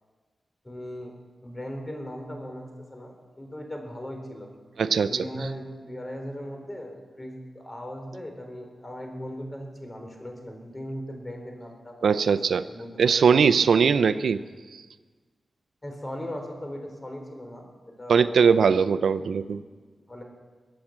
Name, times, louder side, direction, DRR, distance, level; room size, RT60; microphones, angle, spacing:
voice 1, 0.6-1.1 1.4-4.5 5.0-12.2 12.5-12.9 15.8-17.7 18.0-18.9 19.5-19.6 20.1-20.2, equal, 25° left, 3 dB, 4.0 m, -38 dB
voice 2, 4.8-5.2 12.0-12.7 13.0-14.4 18.1-19.6, right 6 dB, 80° right, 13 dB, 0.5 m, -20 dB
22.0 x 8.7 x 7.4 m, 1.4 s
cardioid pair, 65°, 0 cm